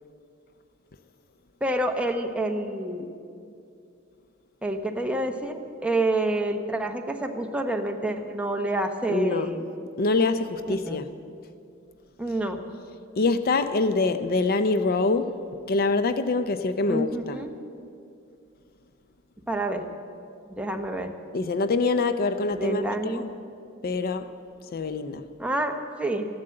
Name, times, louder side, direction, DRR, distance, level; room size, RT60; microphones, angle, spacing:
voice 1, 1.6-3.1 4.6-9.6 10.7-11.0 12.2-12.6 16.8-17.5 19.5-19.8 20.5-21.1 22.5-23.2 25.4-26.3, right 1 dB, 5° right, 3 dB, 1.0 m, -28 dB
voice 2, 9.1-9.5 10.0-11.1 13.2-15.4 15.7-17.4 21.3-23.3 23.8-24.3 24.7-25.3, left 3 dB, 45° left, 11 dB, 0.5 m, -25 dB
14.0 x 11.5 x 7.7 m, 2.5 s
head